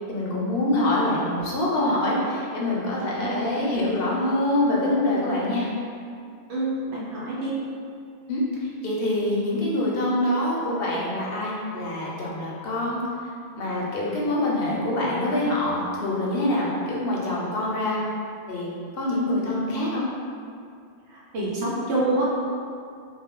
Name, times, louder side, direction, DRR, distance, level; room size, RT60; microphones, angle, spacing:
voice 1, 0.1-5.7 8.3-13.0 13.6-18.0 18.5-20.0 21.6-21.7, left 1 dB, 70° left, -5 dB, 0.8 m, -25 dB
voice 2, 6.5-7.5 21.1-22.2, right 2 dB, 85° right, -7 dB, 1.0 m, -27 dB
2.4 x 2.1 x 3.6 m, 2.3 s
omnidirectional pair, 1.1 m